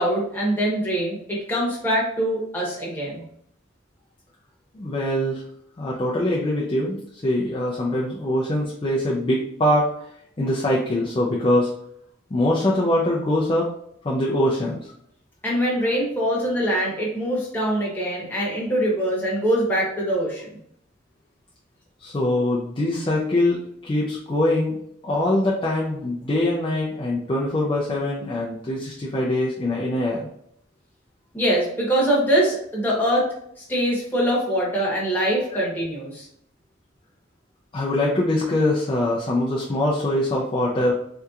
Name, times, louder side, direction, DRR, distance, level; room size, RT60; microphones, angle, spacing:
voice 1, 0.0-3.2 15.4-20.4 31.3-33.3 33.7-36.2, equal, 10° left, -5 dB, 1.0 m, -23 dB
voice 2, 4.7-5.4 5.8-9.9 10.4-11.7 12.3-13.7 14.0-14.9 22.0-24.8 25.0-30.3 35.5-35.6 37.7-40.9, left 1 dB, 25° left, -4 dB, 0.4 m, -23 dB
3.4 x 2.8 x 2.3 m, 0.70 s
head